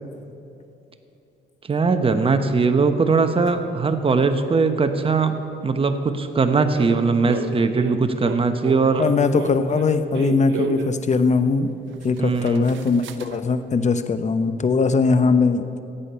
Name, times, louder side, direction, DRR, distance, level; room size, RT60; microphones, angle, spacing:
voice 1, 1.7-5.3 5.6-9.0 12.2-12.7, right 4 dB, 30° right, 7 dB, 1.0 m, -20 dB
sound 1, 3.5-3.6 6.8-11.0 11.6-11.7 11.9-13.4, right 7 dB, 75° right, 0.7 m, -33 dB
voice 2, 9.0-11.7 12.0-15.8, left 4 dB, 35° left, 10 dB, 0.8 m, -20 dB
15.5 x 8.5 x 5.6 m, 2.8 s
cardioid pair, 90°, 20 cm